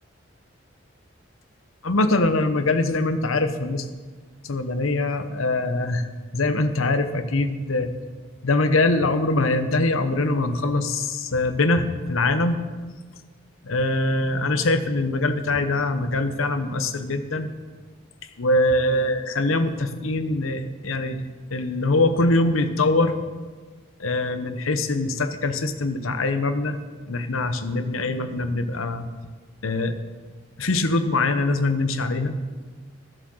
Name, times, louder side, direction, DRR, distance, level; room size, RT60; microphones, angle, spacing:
voice 1, 1.8-3.9 4.4-6.1 6.3-7.9 8.4-12.6 13.6-17.5 18.4-21.2 21.5-23.1 24.0-26.8 27.1-29.1 29.6-29.9 30.6-32.3, left 2 dB, 90° left, 9 dB, 0.9 m, -23 dB
13.5 x 7.7 x 6.3 m, 1.4 s
head